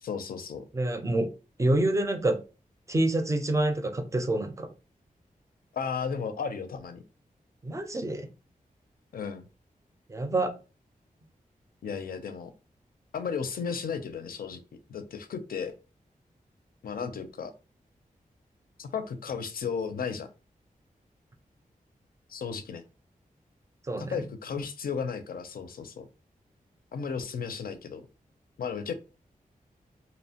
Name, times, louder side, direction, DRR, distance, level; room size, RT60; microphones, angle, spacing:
voice 1, 0.0-0.6 5.7-7.0 9.1-9.5 11.8-12.5 13.1-14.6 14.9-15.7 16.8-17.5 18.8-20.3 22.3-22.8 24.0-26.1 26.9-28.0 28.6-28.9, left 6 dB, 80° left, 9 dB, 0.5 m, -34 dB
voice 2, 0.7-1.3 1.6-2.4 2.9-4.7 7.6-8.3 10.1-10.5 23.9-24.2, right 1 dB, 20° right, 7 dB, 0.4 m, -27 dB
2.8 x 2.1 x 2.7 m, 0.31 s
wide cardioid pair, 120°, 15 cm